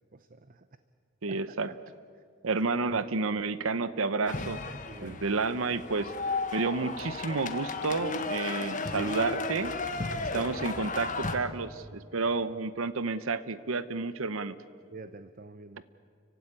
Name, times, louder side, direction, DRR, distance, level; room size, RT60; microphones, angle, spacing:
voice 1, 0.1-0.6 1.3-1.4 1.7-1.8 4.9-5.3 14.9-15.8, right 3 dB, 40° right, 11 dB, 0.7 m, -46 dB
voice 2, 1.2-1.7 2.4-4.6 5.0-6.1 6.5-9.8 10.3-14.6, right 4 dB, 75° right, 14 dB, 0.9 m, -30 dB
sound 1, 4.3-11.3, left 3 dB, 40° left, 1.6 m, -34 dB
30.0 x 16.0 x 9.9 m, 2.2 s
head